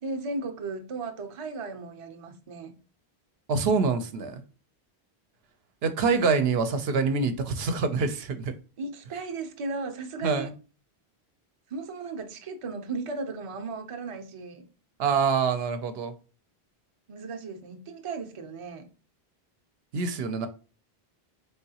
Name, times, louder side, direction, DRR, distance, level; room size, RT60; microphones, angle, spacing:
voice 1, 0.0-2.8 8.8-10.5 11.7-14.6 17.1-18.9, right 3 dB, 40° right, 6 dB, 0.5 m, -36 dB
voice 2, 3.5-4.4 5.8-8.5 10.2-10.5 15.0-16.1 19.9-20.5, right 5 dB, 75° right, 9 dB, 0.8 m, -25 dB
4.6 x 3.5 x 2.8 m, 0.35 s
omnidirectional pair, 1.1 m